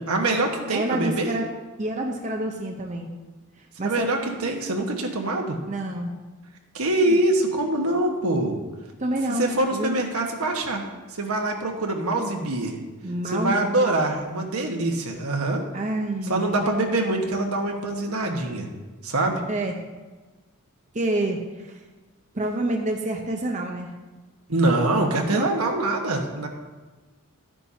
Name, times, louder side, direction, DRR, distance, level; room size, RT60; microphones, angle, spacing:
voice 1, 0.1-1.3 3.8-5.6 6.7-8.6 9.3-10.9 11.2-12.8 13.3-15.6 16.3-18.7 19.0-19.4 24.5-26.5, right 2 dB, 80° right, 2 dB, 1.5 m, -24 dB
voice 2, 0.7-1.4 1.8-3.1 3.8-4.1 5.7-6.1 7.0-7.2 9.0-10.0 13.0-14.1 15.7-16.7 19.5-19.7 20.9-21.8 22.3-23.9 25.3-25.5, right 1 dB, 35° right, 1 dB, 0.8 m, -28 dB
13.0 x 9.9 x 2.8 m, 1.2 s
head